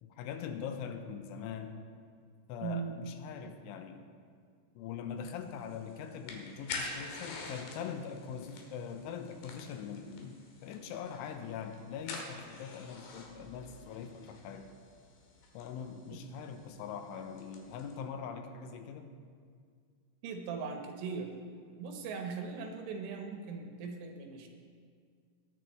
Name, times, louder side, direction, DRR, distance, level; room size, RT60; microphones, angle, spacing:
voice 1, 0.0-1.8 2.5-4.0 4.7-14.7 15.5-19.1, left 7 dB, 90° left, 7 dB, 3.3 m, -42 dB
voice 2, 2.6-3.0 16.1-16.2 20.2-21.3 21.8-24.5, right 5 dB, 85° right, 3 dB, 3.6 m, -39 dB
sound 1, 5.4-17.9, left 3 dB, 70° left, 3.4 m, -47 dB
20.5 x 8.9 x 3.2 m, 2.1 s
omnidirectional pair, 5.5 m